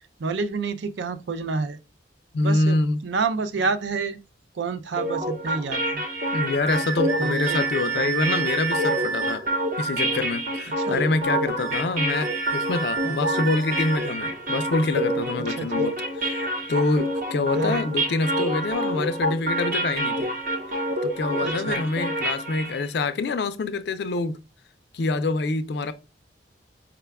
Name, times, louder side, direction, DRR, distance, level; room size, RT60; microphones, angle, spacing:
voice 1, 0.2-1.8 2.4-2.8 3.0-4.2 4.6-6.0 7.2-7.6 8.2-8.3 10.8-11.0 13.0-13.4 15.4-15.9 17.6-17.8 21.4-21.8, right 4 dB, 75° right, 0.4 m, -29 dB
voice 2, 2.3-3.0 6.3-9.4 9.8-20.3 21.0-24.4 24.9-25.9, left 3 dB, 60° left, 0.4 m, -26 dB
sound 1, 5.0-22.8, right 1 dB, 50° right, 0.8 m, -27 dB
sound 2, 6.7-9.4 11.6-14.1, right 7 dB, 15° right, 0.8 m, -31 dB
4.7 x 2.2 x 3.4 m
head